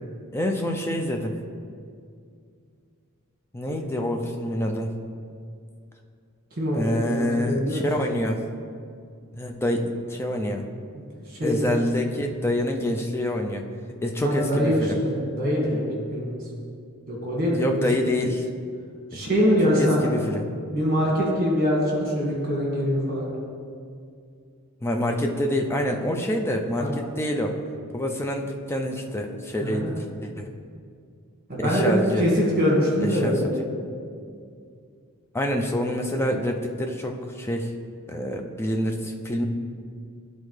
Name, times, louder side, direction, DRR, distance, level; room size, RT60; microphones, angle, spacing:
voice 1, 0.3-1.4 3.5-4.9 6.7-8.4 9.4-10.7 11.4-13.6 14.0-15.0 17.5-18.5 19.1-19.3 19.7-20.4 24.8-27.6 27.9-30.6 31.6-32.3 33.0-33.4 35.3-37.7 38.1-39.5, left 1 dB, 10° left, 2 dB, 0.4 m, -26 dB
voice 2, 6.6-7.8 11.4-11.7 14.2-15.8 16.1-16.3 17.1-17.8 19.1-20.0 20.7-23.3 26.7-26.9 29.6-29.9 31.5-31.9 32.2-32.3 32.6-33.4, equal, 40° right, -3 dB, 1.7 m, -23 dB
11.0 x 4.1 x 3.3 m, 2.3 s
head